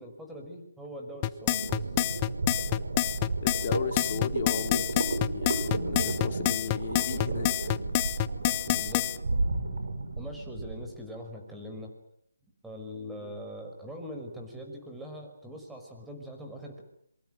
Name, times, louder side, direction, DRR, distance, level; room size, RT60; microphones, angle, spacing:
voice 1, 0.0-1.9 8.7-9.1 10.2-11.9 12.6-16.8, equal, 5° right, 2 dB, 5.5 m, -42 dB
sound 1, 1.2-9.2, left 16 dB, 20° left, 1.0 m, -27 dB
sound 2, 1.5-10.9, right 3 dB, 65° right, 6.7 m, -33 dB
voice 2, 3.4-7.7 13.2-13.4, left 7 dB, 40° left, 6 dB, 3.8 m, -36 dB
27.0 x 24.0 x 7.9 m, 0.71 s
figure-of-eight pair, 155°, 0 cm